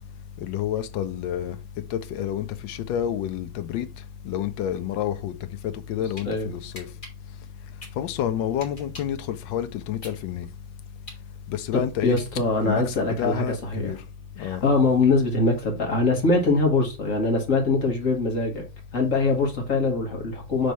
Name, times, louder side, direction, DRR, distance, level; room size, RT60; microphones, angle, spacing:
voice 1, 0.4-1.6 1.9-3.9 4.2-5.3 5.6-6.9 8.0-10.5 11.5-12.2 12.6-14.0 14.4-14.6, left 10 dB, 75° left, 1.3 m, -29 dB
sound 1, 6.2-6.3 6.7-9.2 9.6-12.7, left 2 dB, 25° left, 1.6 m, -44 dB
voice 2, 11.7-13.9 14.4-18.6 18.9-20.7, left 3 dB, 45° left, 1.7 m, -23 dB
5.2 x 3.3 x 5.6 m
omnidirectional pair, 2.1 m